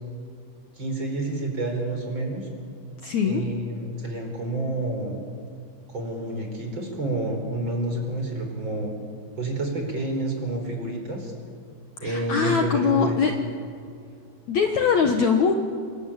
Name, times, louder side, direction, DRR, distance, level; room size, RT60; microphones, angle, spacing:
voice 1, 0.7-2.5 3.2-5.2 5.9-8.9 9.4-11.3 12.0-13.2, right 2 dB, 25° right, 3 dB, 4.9 m, -29 dB
voice 2, 3.0-3.5 12.0-13.3 14.5-15.5, left 6 dB, 80° left, 4 dB, 1.6 m, -22 dB
28.0 x 22.5 x 9.0 m, 2.4 s
omnidirectional pair, 5.4 m